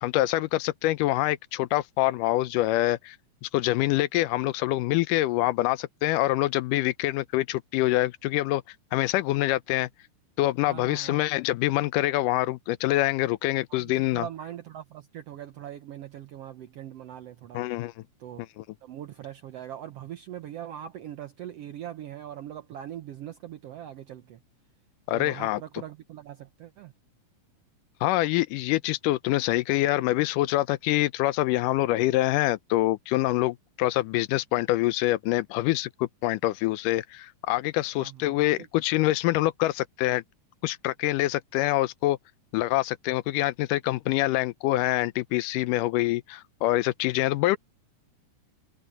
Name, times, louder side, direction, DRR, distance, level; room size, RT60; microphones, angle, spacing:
voice 1, 0.0-3.2 3.4-8.6 8.9-9.9 10.4-14.2 17.5-17.9 18.6-18.7 25.1-25.6 28.0-40.2 40.6-42.2 42.5-47.6, left 16 dB, 80° left, 2.2 m, -25 dB
voice 2, 10.7-11.2 13.7-17.6 18.2-18.4 18.8-24.4 25.1-26.9 38.0-38.7, right 11 dB, 75° right, 1.4 m, -41 dB
omnidirectional pair, 3.8 m